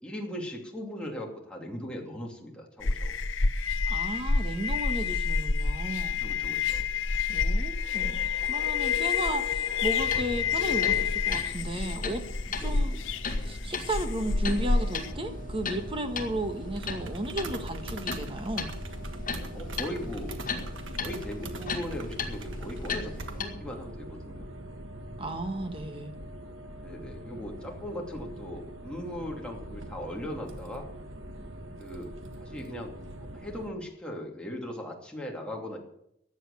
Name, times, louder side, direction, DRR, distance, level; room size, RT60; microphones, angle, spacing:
voice 1, 0.0-3.1 6.2-6.8 12.6-12.8 19.5-20.4 21.0-24.5 26.8-30.9 31.8-32.1 32.4-32.9 33.3-35.8, left 1 dB, 5° left, -1 dB, 2.7 m, -38 dB
sound 1, 2.8-15.1, left 5 dB, 85° left, 0.9 m, -28 dB
voice 2, 3.9-6.2 7.3-12.2 12.6-13.0 13.3-18.8 25.2-26.1, right 1 dB, 30° right, 7 dB, 1.5 m, -34 dB
sound 2, 9.9-23.4, left 4 dB, 45° left, 1.9 m, -38 dB
sound 3, 14.2-33.7, right 1 dB, 90° right, 1.5 m, -42 dB
14.5 x 9.3 x 6.8 m, 0.77 s
head